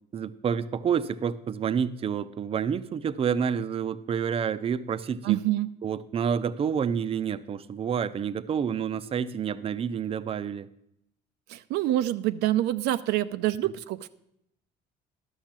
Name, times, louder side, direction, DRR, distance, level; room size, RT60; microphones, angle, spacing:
voice 1, 0.1-5.4 5.8-10.7 13.6-13.7, right 7 dB, 35° right, 13 dB, 0.5 m, -29 dB
voice 2, 5.2-5.7 11.5-14.1, right 14 dB, 90° right, 11 dB, 0.5 m, -26 dB
11.5 x 6.4 x 7.4 m, 0.77 s
cardioid pair, 110°, 17 cm